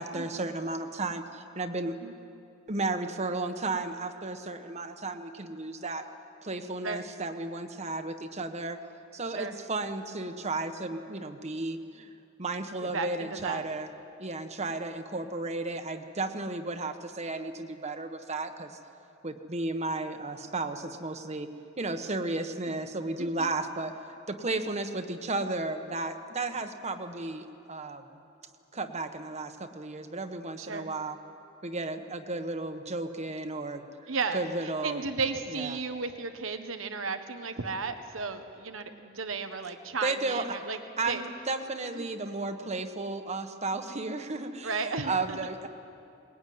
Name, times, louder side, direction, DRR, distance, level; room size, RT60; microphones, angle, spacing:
voice 1, 0.0-1.9 2.7-6.0 6.4-8.8 9.1-12.1 12.4-13.9 14.2-18.8 19.2-23.9 24.3-28.1 28.7-31.2 31.6-33.8 34.3-35.0 35.5-35.8 40.0-40.6 41.0-45.7, right 2 dB, 35° right, 7 dB, 1.3 m, -34 dB
voice 2, 12.8-13.6 23.2-23.5 30.6-30.9 34.1-34.4 34.8-40.8 41.0-41.2 41.9-42.1 44.6-45.4, right 4 dB, 90° right, 8 dB, 1.3 m, -34 dB
22.0 x 20.5 x 9.5 m, 2.7 s
head